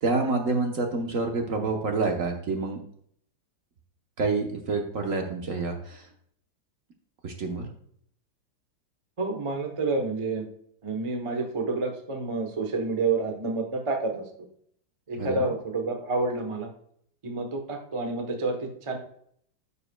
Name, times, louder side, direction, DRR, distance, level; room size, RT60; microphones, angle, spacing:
voice 1, 0.0-2.8 4.2-6.0 7.2-7.7 15.2-15.5, right 3 dB, 50° right, 3 dB, 1.1 m, -28 dB
voice 2, 9.2-10.5 10.8-14.3 15.1-16.7 17.2-19.0, right 3 dB, 30° right, 3 dB, 0.5 m, -29 dB
14.0 x 5.5 x 2.2 m, 0.66 s
omnidirectional pair, 2.1 m